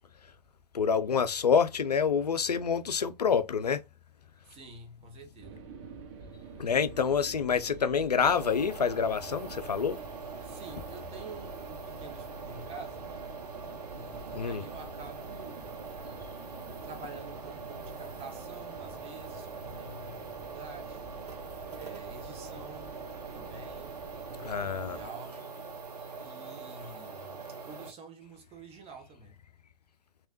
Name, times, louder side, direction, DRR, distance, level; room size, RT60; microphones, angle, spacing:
voice 1, 0.7-3.8 6.6-10.0 14.3-14.6 24.4-25.0, left 6 dB, 80° left, 0.4 m, -27 dB
voice 2, 4.4-5.7 10.4-13.1 13.9-15.8 16.8-21.0 21.7-22.9 23.3-24.0 24.3-24.6 24.8-25.5 26.2-27.4 27.6-29.4, right 3 dB, 30° right, 1.1 m, -48 dB
sound 1, 5.4-25.1, right 3 dB, 45° right, 0.9 m, -47 dB
sound 2, 8.2-27.9, right 4 dB, 80° right, 0.7 m, -43 dB
3.3 x 3.0 x 2.6 m
figure-of-eight pair, 90°, 20 cm